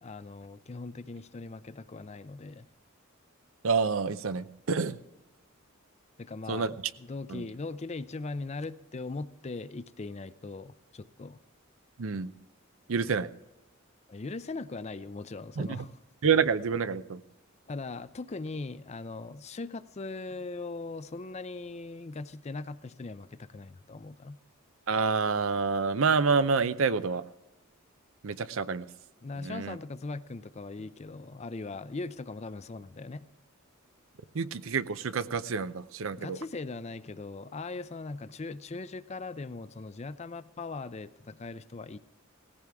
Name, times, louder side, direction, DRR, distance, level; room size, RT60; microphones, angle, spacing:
voice 1, 0.0-2.7 6.2-11.4 14.1-15.9 17.7-24.4 29.2-33.3 36.2-42.0, left 3 dB, 30° left, 14 dB, 0.5 m, -40 dB
voice 2, 3.6-5.0 6.5-6.7 7.3-7.5 12.0-12.3 12.9-13.3 15.6-15.8 16.2-17.2 24.9-27.2 28.2-28.9 29.4-29.8 34.3-36.4, right 5 dB, 70° right, 14 dB, 0.6 m, -28 dB
17.5 x 15.5 x 3.5 m, 0.99 s
head